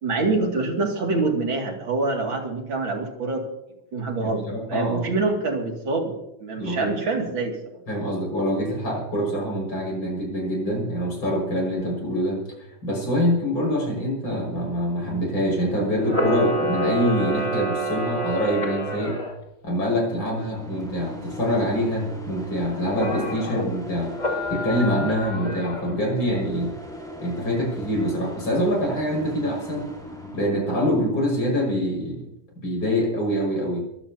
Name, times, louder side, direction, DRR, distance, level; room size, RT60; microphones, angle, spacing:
voice 1, 0.0-3.4 3.9-4.4 4.7-7.5, right 3 dB, 75° right, 1 dB, 3.3 m, -25 dB
voice 2, 4.2-5.1 6.6-6.9 7.9-12.4 12.8-19.2 19.6-24.1 24.5-26.7 27.2-29.9 30.3-32.3 32.6-33.8, equal, 75° left, 0 dB, 6.5 m, -25 dB
Camera, 16.0-19.3 22.9-23.6 24.1-26.0, equal, 20° left, 2.7 m, -27 dB
sound 1, 19.8-30.9, equal, ahead, 4.1 m, -39 dB
22.5 x 15.0 x 2.8 m, 0.84 s
omnidirectional pair, 2.2 m